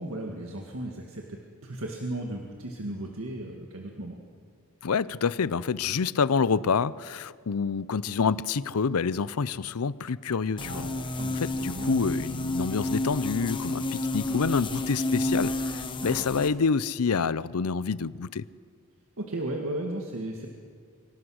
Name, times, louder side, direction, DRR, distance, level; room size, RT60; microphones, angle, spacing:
voice 1, 0.0-4.2 10.6-12.0 16.0-16.4 19.2-20.5, right 1 dB, 65° right, 0 dB, 1.9 m, -36 dB
voice 2, 4.8-10.9 11.4-18.4, left 5 dB, 80° left, 18 dB, 0.6 m, -27 dB
sound 1, 10.6-16.5, left 2 dB, 20° left, 1.2 m, -30 dB
24.5 x 17.5 x 6.4 m, 2.1 s
head